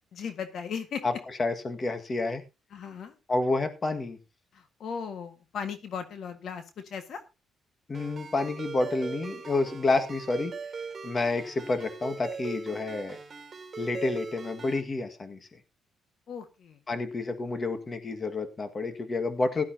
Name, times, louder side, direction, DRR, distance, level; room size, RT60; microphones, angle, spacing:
voice 1, 0.1-1.0 2.7-3.1 4.5-7.2 16.3-16.8, left 6 dB, 65° left, 8 dB, 1.6 m, -37 dB
voice 2, 1.4-2.4 3.3-4.2 7.9-10.5 11.0-13.2 13.8-15.4 16.9-19.6, left 3 dB, 35° left, 7 dB, 1.7 m, -29 dB
Ringtone, 7.9-14.8, right 5 dB, 35° right, 3.0 m, -40 dB
16.5 x 11.5 x 2.8 m, 0.26 s
cardioid pair, 90°, 0 cm